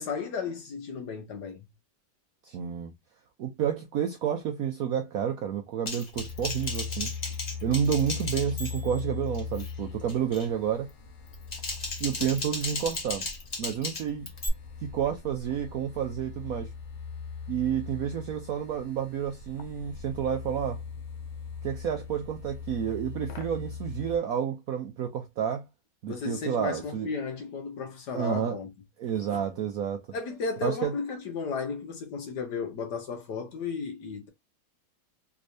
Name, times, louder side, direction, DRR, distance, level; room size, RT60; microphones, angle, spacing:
voice 1, 0.0-1.6 26.1-28.7 30.1-34.3, left 5 dB, 65° left, 1.3 m, -34 dB
voice 2, 2.4-2.9 3.4-7.1 7.6-10.9 12.0-13.3 13.6-14.3 14.9-16.7 17.5-20.8 21.6-25.6 26.0-27.1 28.1-28.6 29.0-30.0 30.6-30.9, right 8 dB, 75° right, 0.8 m, -30 dB
Typing, 5.9-9.0 9.3-9.7 10.1-10.5 11.3-14.5, left 3 dB, 35° left, 0.7 m, -36 dB
sound 1, 6.1-24.2, left 6 dB, 90° left, 0.6 m, -40 dB
3.5 x 3.1 x 2.6 m
omnidirectional pair, 2.1 m